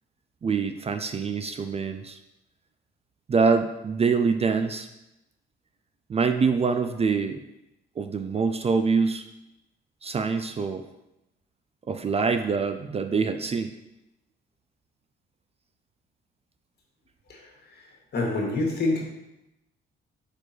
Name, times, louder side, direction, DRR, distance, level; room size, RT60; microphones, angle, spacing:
voice 1, 0.4-2.2 3.3-4.9 6.1-7.4 8.0-9.3 10.0-10.8 11.9-13.7, right 5 dB, 30° right, 8 dB, 0.4 m, -25 dB
voice 2, 17.3-17.8 18.1-19.0, left 2 dB, 55° left, -1 dB, 1.9 m, -27 dB
4.8 x 4.4 x 4.5 m, 0.91 s
cardioid pair, 90°, 20 cm